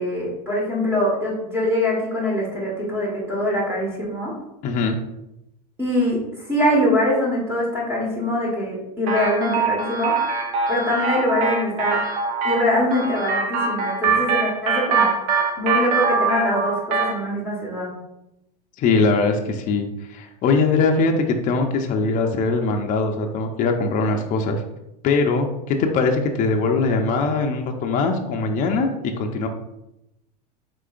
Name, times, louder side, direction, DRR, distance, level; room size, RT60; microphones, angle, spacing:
voice 1, 0.0-4.3 5.8-10.2 10.7-12.0 12.4-15.3 15.6-17.9, left 1 dB, 10° right, -4 dB, 1.4 m, -23 dB
voice 2, 4.6-4.9 18.8-24.6 25.0-29.5, left 4 dB, 40° left, 3 dB, 0.6 m, -21 dB
sound 1, 9.1-17.2, right 4 dB, 60° right, 0.8 m, -23 dB
4.8 x 3.8 x 2.5 m, 0.88 s
hypercardioid pair, 105°, 21 cm